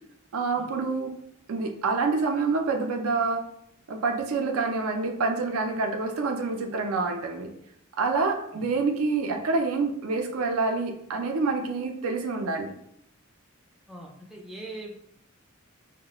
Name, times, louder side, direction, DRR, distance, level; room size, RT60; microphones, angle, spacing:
voice 1, 0.3-1.1 1.5-3.4 3.9-7.5 8.0-12.7, right 4 dB, 80° right, 4 dB, 0.4 m, -27 dB
voice 2, 13.9-15.0, right 2 dB, ahead, -2 dB, 0.3 m, -41 dB
2.3 x 2.0 x 2.8 m, 0.72 s
head